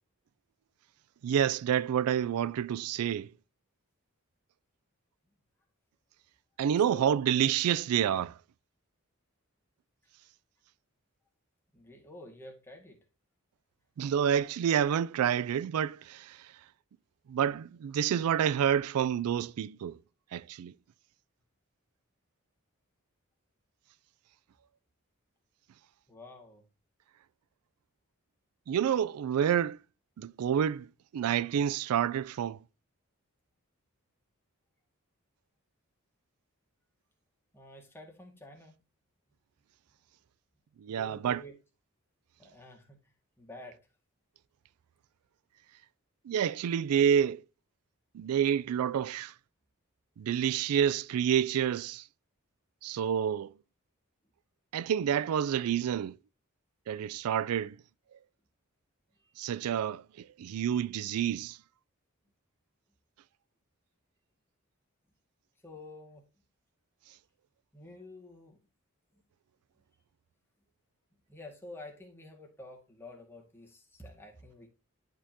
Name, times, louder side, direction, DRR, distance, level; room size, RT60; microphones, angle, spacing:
voice 1, 1.2-3.3 6.6-8.4 14.0-16.6 17.3-20.0 20.3-20.7 28.7-29.8 30.2-32.6 40.8-41.4 46.2-47.4 48.1-49.3 50.2-52.1 52.8-53.5 54.7-56.2 56.9-57.8 59.4-61.6, right 9 dB, 85° right, 0.3 m, -28 dB
voice 2, 6.9-7.2 11.7-13.0 26.1-26.7 37.5-38.8 40.9-41.6 42.4-43.8 59.2-59.4 65.6-66.2 67.7-68.6 71.3-74.7, left 1 dB, 10° left, 1.8 m, -49 dB
11.0 x 5.4 x 2.7 m
head